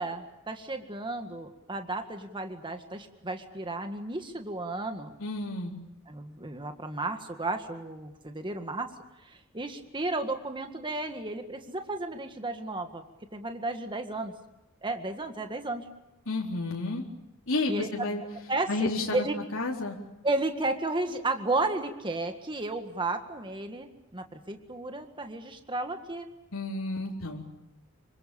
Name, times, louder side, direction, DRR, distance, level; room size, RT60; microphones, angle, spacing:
voice 1, 0.0-5.2 6.1-8.9 9.2-13.0 13.3-14.3 14.8-15.9 17.7-18.1 18.5-19.4 20.2-26.3, right 2 dB, 25° right, 6 dB, 1.8 m, -33 dB
voice 2, 5.2-5.7 16.3-17.0 17.5-18.2 18.7-19.3 19.5-20.0 26.5-27.4, left 2 dB, 65° left, -2 dB, 4.1 m, -31 dB
27.5 x 25.0 x 7.1 m, 0.93 s
head